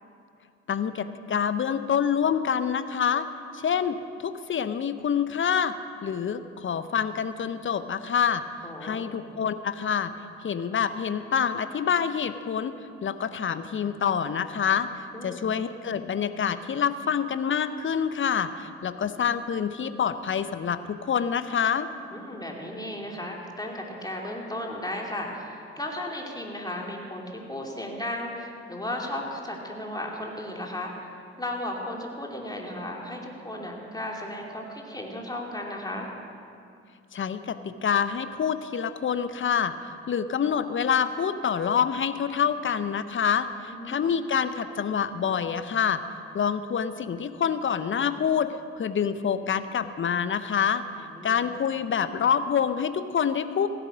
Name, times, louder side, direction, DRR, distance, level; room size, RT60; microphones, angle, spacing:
voice 1, 0.7-3.3 3.5-5.8 6.0-8.4 8.8-10.1 10.4-12.8 13.0-14.9 15.2-21.9 37.1-39.7 40.1-46.0 46.3-50.8 51.2-53.7, left 7 dB, 40° left, 12 dB, 0.7 m, -26 dB
voice 2, 8.6-9.0 15.1-15.5 22.1-31.1 31.4-36.1 43.7-44.0 51.0-51.4, left 1 dB, 10° left, -1 dB, 2.8 m, -35 dB
16.0 x 9.1 x 6.3 m, 2.4 s
hypercardioid pair, 40°, 32 cm